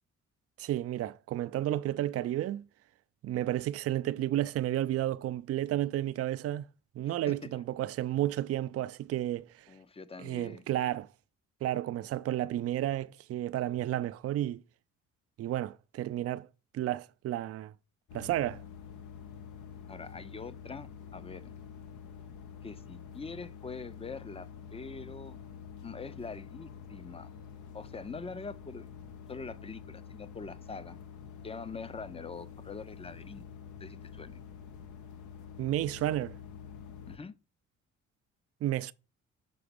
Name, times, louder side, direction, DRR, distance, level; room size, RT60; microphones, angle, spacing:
voice 1, 0.6-2.6 3.2-6.7 7.0-9.5 10.2-11.1 11.6-14.6 15.4-16.5 16.7-17.7 18.1-18.6 35.6-36.4 38.6-38.9, right 13 dB, 50° right, 0.4 m, -32 dB
voice 2, 7.1-7.5 9.7-10.6 19.9-21.5 22.6-25.4 25.8-27.3 27.7-28.9 29.3-31.0 31.4-33.5 33.8-34.4 37.1-37.4, left 4 dB, 20° left, 0.6 m, -44 dB
sound 1, 18.1-37.2, left 7 dB, 75° left, 1.0 m, -47 dB
6.0 x 3.9 x 5.2 m
cardioid pair, 90°, 30 cm